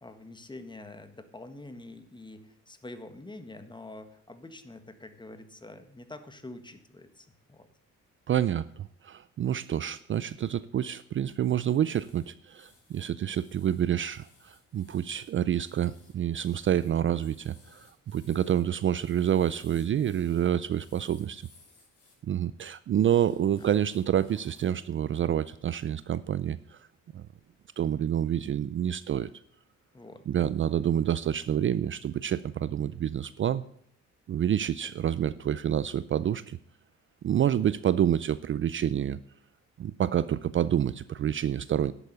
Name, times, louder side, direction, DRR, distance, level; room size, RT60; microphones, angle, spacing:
voice 1, 0.0-7.7 23.5-23.7 28.3-28.5 29.9-30.5, left 2 dB, 15° left, 9 dB, 1.6 m, -46 dB
voice 2, 8.3-21.5 22.3-26.9 27.1-27.2 27.8-29.3 30.3-33.6 34.3-36.6 37.2-39.2 39.8-41.9, right 10 dB, 40° right, 16 dB, 0.4 m, -28 dB
sound 1, 11.8-22.2 23.0-24.8 25.2-25.4, left 3 dB, 50° left, 5.9 m, -60 dB
11.0 x 8.3 x 6.8 m, 0.68 s
cardioid pair, 90°, 30 cm